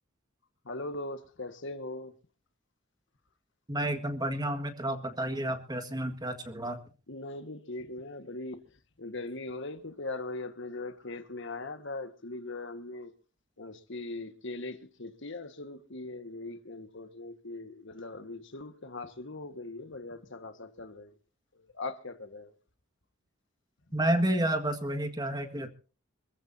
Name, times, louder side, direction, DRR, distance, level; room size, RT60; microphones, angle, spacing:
voice 1, 0.6-2.1 7.1-8.6 9.0-13.1 13.6-21.1 21.7-22.5, left 2 dB, 60° left, 1.6 m, -40 dB
voice 2, 3.7-6.8 23.9-25.7, right 1 dB, 20° right, 1.7 m, -30 dB
26.0 x 14.5 x 2.8 m
head